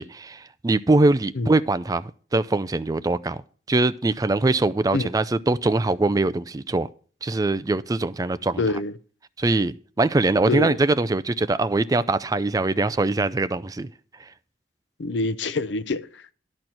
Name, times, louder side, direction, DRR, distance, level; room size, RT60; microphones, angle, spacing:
voice 1, 0.0-3.4 3.7-6.9 7.2-8.6 9.4-13.9, right 2 dB, 20° right, 0.4 m, -22 dB
voice 2, 8.6-8.9 10.5-10.8 15.0-16.3, left 3 dB, 85° left, 0.6 m, -26 dB
12.0 x 4.4 x 7.7 m
head